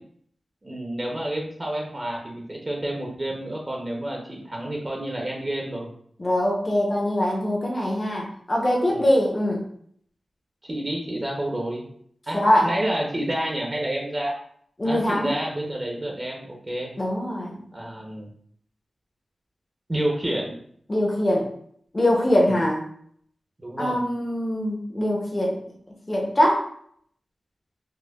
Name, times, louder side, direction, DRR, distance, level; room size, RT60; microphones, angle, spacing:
voice 1, 0.6-5.9 8.9-9.1 10.6-11.8 12.3-14.3 14.8-16.9 17.7-18.3 19.9-20.6 22.4-22.5 23.6-24.0, right 1 dB, 25° right, -1 dB, 0.6 m, -29 dB
voice 2, 6.2-9.6 12.3-12.7 14.8-15.3 17.0-17.6 20.9-21.5 21.9-22.8 23.8-25.6 26.1-26.6, left 1 dB, 25° left, -2 dB, 0.6 m, -22 dB
4.3 x 2.1 x 2.2 m, 0.64 s
wide cardioid pair, 95°, 0 cm